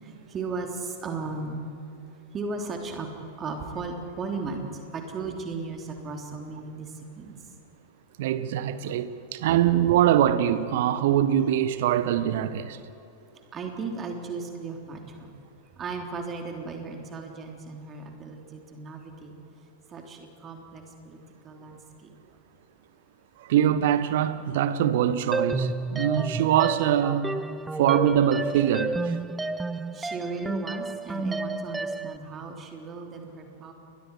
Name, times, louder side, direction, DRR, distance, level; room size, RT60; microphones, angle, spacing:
voice 1, 0.0-1.6 2.3-3.1 3.4-7.4 13.5-15.3 15.8-19.3 19.9-21.2 21.4-22.1 29.9-33.7, right 4 dB, 25° right, 3.3 m, -36 dB
voice 2, 8.2-12.8 23.4-27.4 27.8-29.2, right 10 dB, 55° right, 1.2 m, -23 dB
sound 1, 25.3-32.2, right 2 dB, 10° right, 0.6 m, -31 dB
29.5 x 22.0 x 4.8 m
figure-of-eight pair, 90°, 0 cm